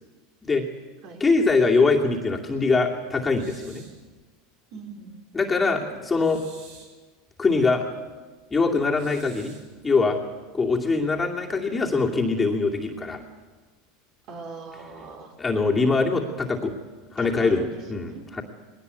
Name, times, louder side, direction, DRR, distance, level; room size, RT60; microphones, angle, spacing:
voice 1, 1.2-3.9 5.3-6.4 7.4-7.9 8.5-9.5 9.8-10.2 10.5-13.2 15.4-16.7 17.1-18.4, left 3 dB, 15° left, -1 dB, 2.5 m, -23 dB
sound 1, 3.3-4.0 6.2-7.0 8.9-9.7, right 4 dB, 70° right, 5.4 m, -50 dB
voice 2, 4.7-5.1 14.3-15.3 17.2-18.2, right 4 dB, 50° right, 2 dB, 4.7 m, -40 dB
21.0 x 18.0 x 8.3 m, 1.3 s
supercardioid pair, 135°, 0 cm